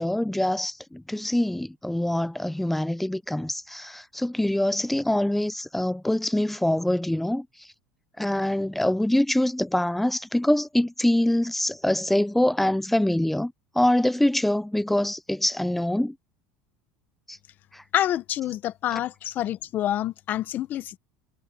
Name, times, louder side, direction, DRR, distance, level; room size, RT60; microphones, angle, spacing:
voice 1, 0.0-7.5 8.2-16.1 17.3-17.4 17.7-17.8, left 1 dB, 5° left, 0.8 m, -24 dB
voice 2, 17.9-21.0, left 12 dB, 45° left, 1.3 m, -27 dB
supercardioid pair, 125°, 4 cm